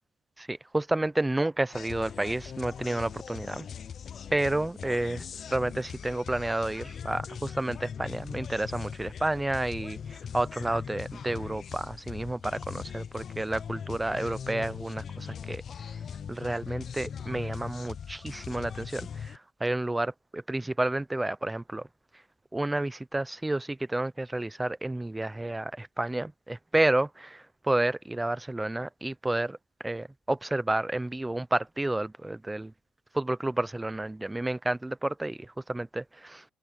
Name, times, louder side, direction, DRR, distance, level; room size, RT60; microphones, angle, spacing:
voice 1, 0.4-3.7 4.3-5.3 5.5-15.6 16.3-21.9 22.5-29.6 29.8-32.7 33.1-36.4, right 2 dB, 10° right, 0.5 m, -30 dB
sound 1, 1.7-19.4, left 7 dB, 40° left, 0.6 m, -40 dB
cardioid pair, 130°, 0 cm